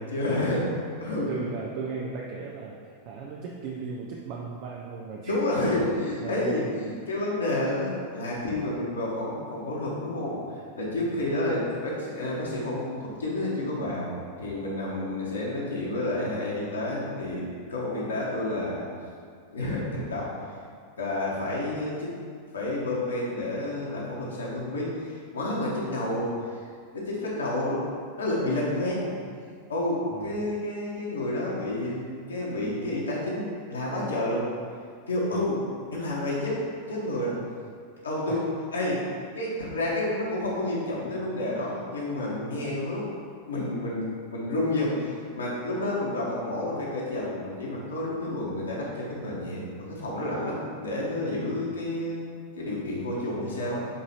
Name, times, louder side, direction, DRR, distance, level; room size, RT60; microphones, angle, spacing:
voice 1, 0.1-0.7 1.0-1.3 5.3-18.9 19.5-20.6 21.0-22.1 22.5-27.8 28.2-34.5 35.1-35.6 35.9-37.4 38.0-38.4 38.7-43.1 43.4-52.2 52.6-53.9, left 1 dB, 70° left, -5 dB, 1.6 m, -30 dB
voice 2, 1.3-5.3 6.2-7.0 11.0-11.2 30.1-30.4 35.3-35.5 38.3-38.4 51.5-51.8, right 5 dB, 45° right, -1 dB, 0.6 m, -37 dB
7.4 x 4.1 x 4.3 m, 2.1 s
figure-of-eight pair, 90°, 0 cm